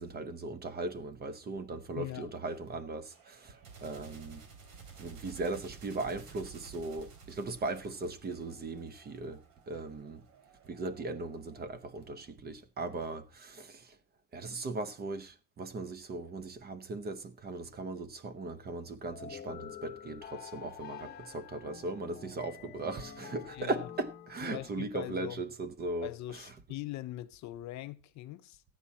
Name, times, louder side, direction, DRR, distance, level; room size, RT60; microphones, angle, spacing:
voice 1, 0.0-4.4 5.0-10.2 10.6-14.0 14.3-26.5, right 3 dB, 25° right, 0.8 m, -38 dB
voice 2, 2.0-2.3 23.5-23.9 24.4-25.5 26.0-28.6, left 15 dB, 45° left, 0.5 m, -41 dB
sound 1, 3.1-12.3, right 5 dB, 60° right, 3.2 m, -54 dB
sound 2, 19.1-24.8, left 8 dB, 25° left, 1.0 m, -48 dB
14.0 x 9.0 x 4.2 m
cardioid pair, 160°, 40 cm